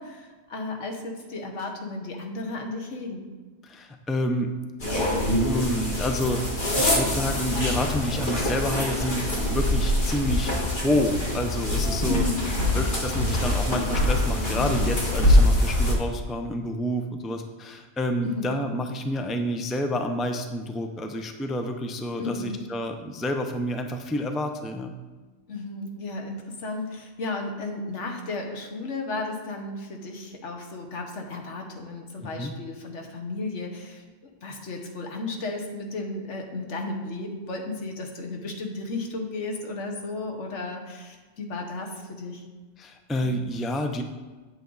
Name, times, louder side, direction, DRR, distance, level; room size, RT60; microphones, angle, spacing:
voice 1, 0.0-3.2 12.1-12.5 18.2-18.5 22.2-22.6 25.5-34.0 34.4-42.4, left 2 dB, 85° left, 3 dB, 1.5 m, -34 dB
voice 2, 3.6-4.5 4.9-6.4 6.8-12.2 12.7-25.0 32.2-32.5 42.8-44.0, left 1 dB, ahead, 5 dB, 0.3 m, -29 dB
sound 1, 4.8-15.9, left 1 dB, 45° left, 1.7 m, -24 dB
8.2 x 8.1 x 3.9 m, 1.3 s
omnidirectional pair, 1.2 m